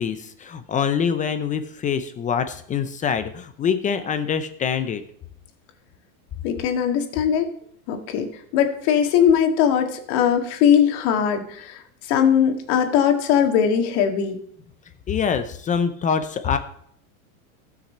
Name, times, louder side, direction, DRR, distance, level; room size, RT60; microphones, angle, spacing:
voice 1, 0.0-5.0 15.1-16.6, left 7 dB, 20° left, 10 dB, 0.5 m, -24 dB
voice 2, 6.4-7.5 7.9-8.3 8.5-11.8 12.1-14.4, left 8 dB, 50° left, 5 dB, 1.9 m, -20 dB
17.5 x 6.0 x 4.3 m, 0.66 s
supercardioid pair, 135°, 43 cm